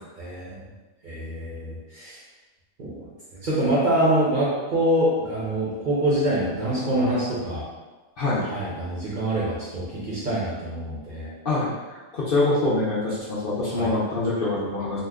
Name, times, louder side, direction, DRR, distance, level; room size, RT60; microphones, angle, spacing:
voice 1, 0.2-0.6 1.0-2.2 2.8-3.0 3.4-7.6 8.4-11.3 13.6-13.9, right 1 dB, 45° right, -7 dB, 0.7 m, -25 dB
voice 2, 11.4-15.0, left 2 dB, 55° left, -8 dB, 0.7 m, -25 dB
2.8 x 2.1 x 3.5 m, 1.2 s
omnidirectional pair, 1.4 m